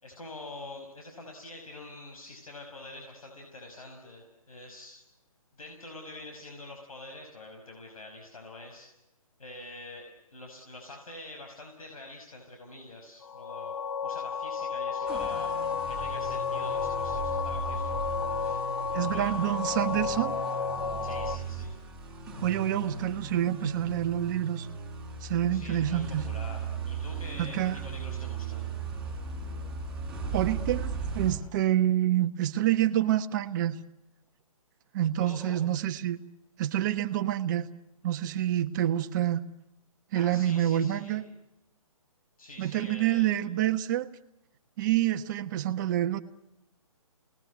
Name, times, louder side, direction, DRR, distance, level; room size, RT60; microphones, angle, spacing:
voice 1, 0.0-5.0 5.6-8.9 9.4-13.7 14.0-15.5 15.9-18.1 18.4-18.6 19.0-19.6 21.0-21.7 25.5-28.7 35.2-35.6 40.1-41.2 42.4-43.4, left 2 dB, 75° left, 2 dB, 5.7 m, -46 dB
sound 1, 13.2-21.4, left 6 dB, 60° left, 1.4 m, -32 dB
sound 2, 15.1-31.3, right 4 dB, 5° right, 7.0 m, -37 dB
voice 2, 18.9-20.3 22.4-24.7 25.2-26.2 27.4-27.8 30.3-33.8 34.9-36.2 36.6-37.7 38.0-39.4 40.1-41.2 42.6-44.1 44.8-46.2, right 12 dB, 35° right, 8 dB, 1.4 m, -27 dB
29.5 x 19.5 x 9.6 m, 0.93 s
hypercardioid pair, 145°, 18 cm